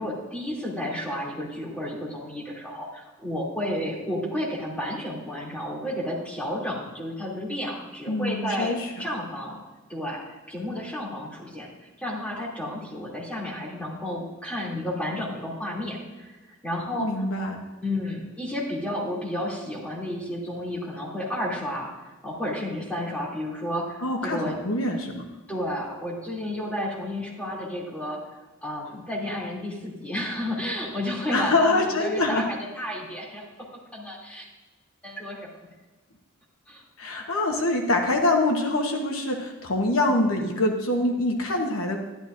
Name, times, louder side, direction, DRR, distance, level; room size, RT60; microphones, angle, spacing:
voice 1, 0.0-9.6 9.9-11.7 12.0-16.3 16.6-17.3 17.8-21.9 22.2-24.6 25.5-28.2 28.6-33.4 33.9-34.4 35.0-35.5 36.7-36.8, left 1 dB, 5° left, -6 dB, 2.7 m, -32 dB
voice 2, 8.1-8.9 17.0-17.6 24.0-25.2 31.3-32.5 37.0-42.0, left 2 dB, 70° left, 3 dB, 1.0 m, -24 dB
12.0 x 11.5 x 2.6 m, 1.2 s
head